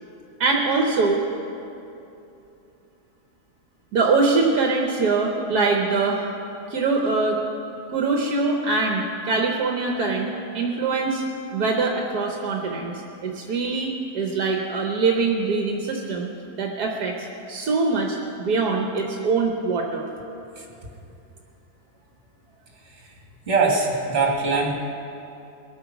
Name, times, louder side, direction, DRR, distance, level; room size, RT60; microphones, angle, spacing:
voice 1, 0.4-1.2 3.9-6.3 6.7-7.4 7.9-10.3 10.5-11.2 11.5-12.9 13.2-16.3 16.6-17.1 17.5-20.1 24.5-24.6, right 3 dB, 75° right, 1 dB, 1.6 m, -23 dB
voice 2, 23.5-24.7, right 4 dB, 45° right, -1 dB, 2.6 m, -21 dB
21.5 x 8.9 x 6.1 m, 2.8 s
omnidirectional pair, 1.7 m